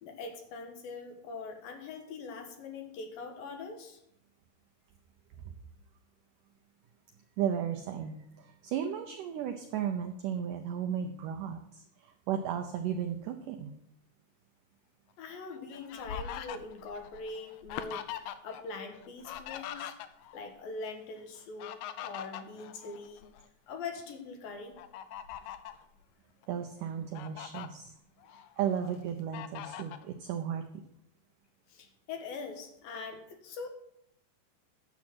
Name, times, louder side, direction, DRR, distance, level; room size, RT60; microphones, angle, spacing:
voice 1, 0.0-4.0 15.2-19.9 20.3-23.3 23.7-24.8 31.7-33.7, left 4 dB, 70° left, 5 dB, 2.8 m, -42 dB
voice 2, 7.4-13.7 26.5-27.9 28.3-30.8, right 8 dB, 85° right, 6 dB, 1.8 m, -35 dB
Fowl, 15.3-18.6 18.9-20.4 21.4-23.5 23.9-24.1 24.8-25.8 26.4-26.5 26.9-27.7 28.2-28.9 29.3-30.1, left 10 dB, 85° left, 1.9 m, -42 dB
9.9 x 7.2 x 6.0 m, 0.76 s
omnidirectional pair, 4.6 m